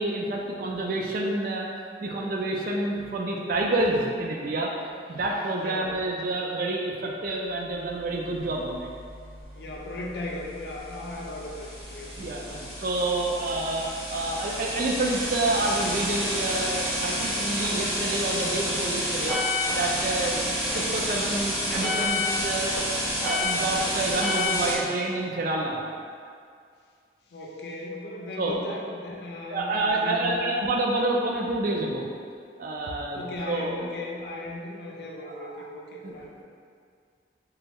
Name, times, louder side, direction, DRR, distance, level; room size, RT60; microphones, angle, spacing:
voice 1, 0.0-1.7 2.0-4.7 5.1-8.9 12.2-19.4 19.7-20.4 20.7-22.8 23.1-25.8 28.4-28.6 29.5-32.1 32.6-33.8 35.3-35.5 36.0-36.1, right 2 dB, 50° right, -1 dB, 0.4 m, -28 dB
voice 2, 5.6-5.9 9.5-12.5 20.2-20.5 27.3-30.4 33.1-36.4, left 2 dB, 60° left, -2 dB, 0.5 m, -37 dB
sound 1, 7.9-24.7, left 1 dB, 15° right, 0.9 m, -30 dB
3.3 x 2.0 x 3.4 m, 2.2 s
head